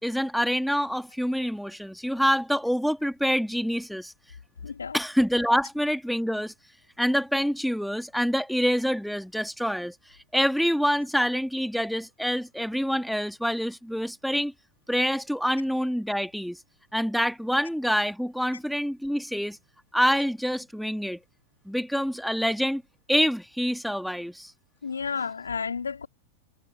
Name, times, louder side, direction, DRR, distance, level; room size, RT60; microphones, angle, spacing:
voice 1, 0.0-4.1 4.9-6.5 7.0-9.9 10.3-14.5 14.9-16.6 16.9-19.6 19.9-21.2 21.7-22.8 23.1-24.5, equal, ahead, 2.8 m, -26 dB
voice 2, 4.6-5.0 24.8-26.1, left 5 dB, 75° left, 4.5 m, -31 dB
figure-of-eight pair, 90°, 0 cm